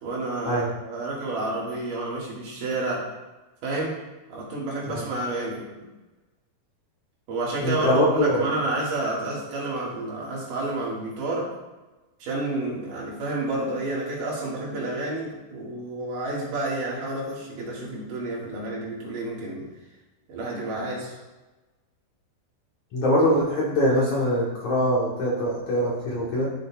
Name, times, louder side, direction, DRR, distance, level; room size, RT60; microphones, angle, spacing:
voice 1, 0.0-3.1 3.6-4.0 4.3-5.9 7.3-11.5 12.2-19.7 20.3-21.1, right 2 dB, 60° right, -5 dB, 3.0 m, -30 dB
voice 2, 7.6-8.5 22.9-26.5, equal, 65° left, -5 dB, 1.9 m, -23 dB
12.0 x 6.3 x 2.3 m, 1.1 s
omnidirectional pair, 4.8 m